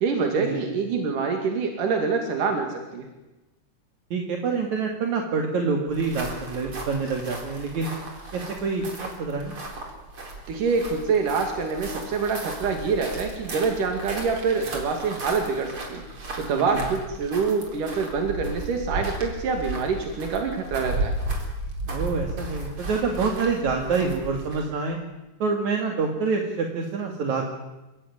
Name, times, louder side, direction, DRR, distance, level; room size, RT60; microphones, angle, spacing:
voice 1, 0.0-3.1 10.5-21.2, right 5 dB, 90° right, 4 dB, 3.8 m, -26 dB
voice 2, 4.1-7.9 8.3-9.6 16.4-16.8 21.9-25.0 25.4-27.5, right 4 dB, 65° right, 2 dB, 3.6 m, -27 dB
sound 1, 5.9-24.8, right 2 dB, 40° right, 5.0 m, -35 dB
29.5 x 17.0 x 9.7 m, 1.1 s
omnidirectional pair, 3.6 m